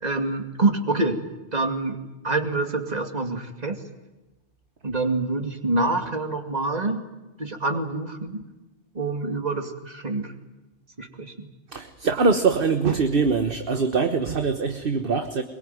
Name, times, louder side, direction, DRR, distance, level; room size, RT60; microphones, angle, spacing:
voice 1, 0.0-1.2 1.5-2.0 2.2-3.8 4.8-7.0 7.4-8.4 8.9-10.3 11.0-11.5, right 2 dB, 40° right, 5 dB, 2.6 m, -26 dB
voice 2, 11.7-15.4, right 4 dB, 55° right, 8 dB, 1.5 m, -23 dB
23.5 x 22.5 x 9.3 m, 1.1 s
omnidirectional pair, 1.1 m